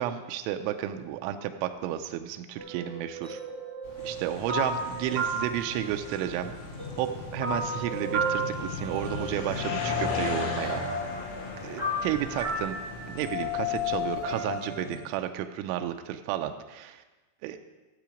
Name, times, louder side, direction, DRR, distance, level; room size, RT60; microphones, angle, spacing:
voice 1, 0.0-3.4 4.0-6.5 7.0-10.8 11.6-12.8 13.1-17.0 17.4-17.6, right 11 dB, 85° right, 7 dB, 3.0 m, -32 dB
sound 1, 2.6-6.5 6.8-14.9, left 1 dB, 10° right, 2.4 m, -33 dB
sound 2, 3.8-14.4, left 1 dB, 45° left, 2.2 m, -49 dB
sound 3, 4.0-15.0, left 3 dB, 80° left, 4.0 m, -38 dB
13.0 x 7.6 x 5.1 m, 1.2 s
omnidirectional pair, 5.3 m